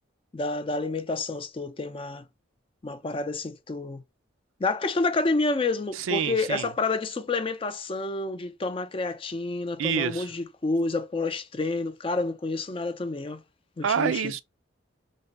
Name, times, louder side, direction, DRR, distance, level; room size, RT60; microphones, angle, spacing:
voice 1, 0.3-2.2 2.8-4.0 4.6-13.4 13.8-14.3, left 3 dB, 25° left, 0.4 m, -29 dB
voice 2, 5.9-6.7 9.8-10.3 13.8-14.4, right 7 dB, 90° right, 0.4 m, -27 dB
3.3 x 2.1 x 4.0 m
head